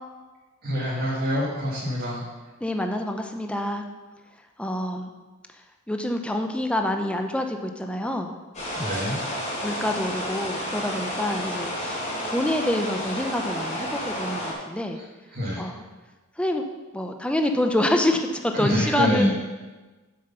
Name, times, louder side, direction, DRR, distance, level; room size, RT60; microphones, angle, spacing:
voice 1, 0.6-2.2 8.7-9.2 15.3-15.6 18.5-19.3, equal, 50° right, -7 dB, 2.0 m, -25 dB
voice 2, 2.6-3.8 4.6-5.1 5.9-8.3 9.6-15.0 15.6-15.8 16.4-16.6 16.9-19.3, left 1 dB, 5° left, 4 dB, 0.5 m, -27 dB
sound 1, 8.5-14.5, equal, 35° left, 3.3 m, -31 dB
7.9 x 6.8 x 5.5 m, 1.2 s
head